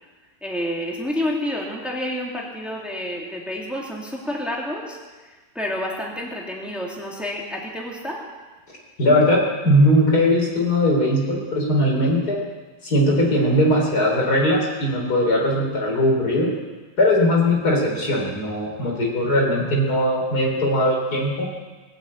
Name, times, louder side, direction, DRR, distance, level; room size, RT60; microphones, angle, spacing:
voice 1, 0.4-8.3, left 1 dB, ahead, -2 dB, 2.4 m, -29 dB
voice 2, 9.0-12.4 12.8-16.5 17.0-21.5, left 1 dB, 80° left, -1 dB, 4.0 m, -19 dB
20.0 x 8.2 x 8.5 m, 1.3 s
omnidirectional pair, 1.7 m